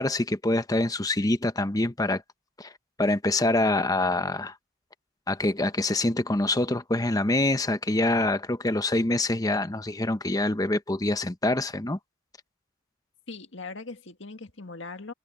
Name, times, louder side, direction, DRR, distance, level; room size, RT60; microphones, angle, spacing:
voice 1, 0.0-2.2 2.6-2.7 3.0-4.5 5.3-12.0, left 2 dB, 20° left, 0.9 m, -25 dB
voice 2, 13.3-15.1, left 3 dB, 65° left, 2.0 m, -40 dB
head